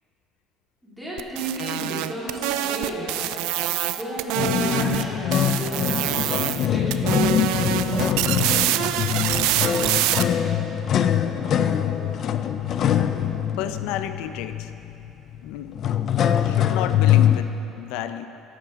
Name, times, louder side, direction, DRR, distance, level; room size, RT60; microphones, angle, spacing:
voice 1, 0.8-3.3 3.9-7.2, equal, ahead, -9 dB, 2.4 m, -34 dB
sound 1, 1.2-5.0 5.3-6.7 6.9-10.2, right 14 dB, 85° right, 0.4 m, -25 dB
sound 2, 1.6-6.5, left 2 dB, 70° left, 1.6 m, -42 dB
sound 3, 4.3-17.4, left 9 dB, 35° left, 0.4 m, -23 dB
voice 2, 13.6-14.7 15.4-15.8 16.4-18.3, left 10 dB, 85° left, 10 dB, 0.5 m, -31 dB
14.0 x 11.0 x 3.6 m, 2.8 s
cardioid pair, 175°, 0 cm